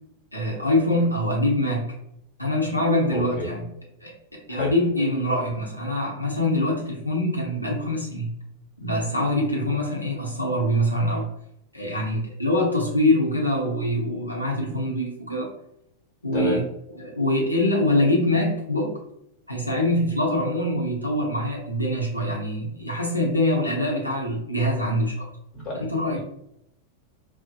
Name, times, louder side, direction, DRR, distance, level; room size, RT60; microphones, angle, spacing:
voice 1, 0.3-1.9 2.4-3.6 4.0-4.1 4.5-8.3 8.8-11.3 11.7-15.5 16.2-16.6 17.0-18.9 19.5-25.2 25.8-26.2, left 1 dB, 90° left, -2 dB, 0.7 m, -24 dB
voice 2, 3.1-3.5 4.5-4.7 16.3-16.6 25.5-26.2, left 1 dB, 30° left, -2 dB, 1.1 m, -30 dB
2.7 x 2.1 x 2.5 m, 0.78 s
figure-of-eight pair, 90°, 0 cm